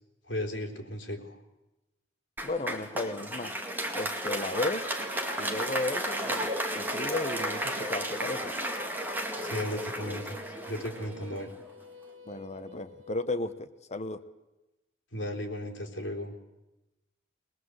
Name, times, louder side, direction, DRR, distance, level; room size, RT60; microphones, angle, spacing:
voice 1, 0.3-1.4 9.4-10.4 10.7-11.5 15.1-16.3, equal, 65° left, 3 dB, 3.8 m, -35 dB
voice 2, 2.4-3.5 3.9-4.9 5.4-8.5 12.3-14.2, left 2 dB, 35° left, 11 dB, 1.0 m, -34 dB
Applause, 2.4-11.7, equal, 10° right, 2.2 m, -34 dB
Female singing, 4.4-13.2, right 6 dB, 90° right, 1.5 m, -46 dB
22.0 x 20.5 x 8.0 m, 0.99 s
head